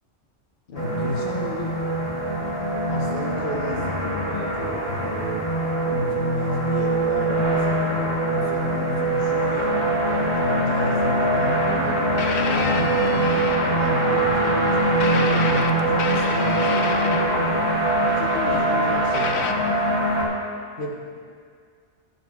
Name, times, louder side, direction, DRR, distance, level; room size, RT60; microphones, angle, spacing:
voice 1, 0.7-1.8 2.9-5.4 5.8-9.7 10.1-12.2 12.4-17.7 18.0-20.0 20.8-21.2, left 2 dB, 50° left, -2 dB, 1.1 m, -32 dB
sound 1, 0.7-20.2, right 1 dB, 20° left, 2.0 m, -23 dB
sound 2, 12.2-14.1 15.0-17.6 19.1-19.5, left 6 dB, 70° left, 0.9 m, -30 dB
18.0 x 7.1 x 2.4 m, 2.1 s
omnidirectional pair, 1.2 m